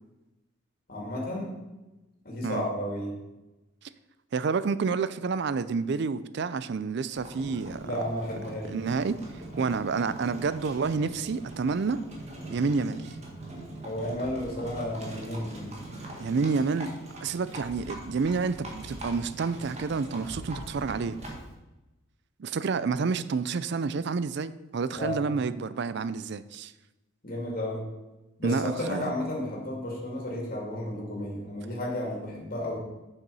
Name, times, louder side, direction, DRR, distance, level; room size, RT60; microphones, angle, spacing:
voice 1, 0.9-1.6 2.2-3.1 7.8-8.8 13.8-15.7 24.9-25.3 27.2-27.9 28.4-32.8, left 1 dB, 45° left, 2.5 m, -33 dB
voice 2, 4.3-7.9 8.7-9.2 9.6-12.0 12.5-13.1 16.2-16.9 17.2-21.2 22.4-26.7 28.4-29.1, right 4 dB, 55° right, 0.4 m, -29 dB
Livestock farm animals working animals, 7.1-21.5, right 1 dB, 35° right, 1.7 m, -42 dB
7.5 x 6.6 x 5.5 m
head